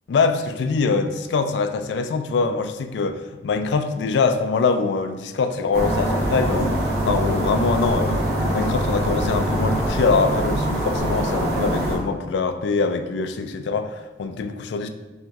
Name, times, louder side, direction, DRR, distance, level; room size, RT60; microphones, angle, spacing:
voice 1, 0.1-6.7 7.0-14.9, left 4 dB, 75° left, 8 dB, 0.3 m, -23 dB
sound 1, 5.7-12.0, right 1 dB, 60° right, 0.9 m, -23 dB
5.7 x 2.6 x 2.3 m, 1.1 s
head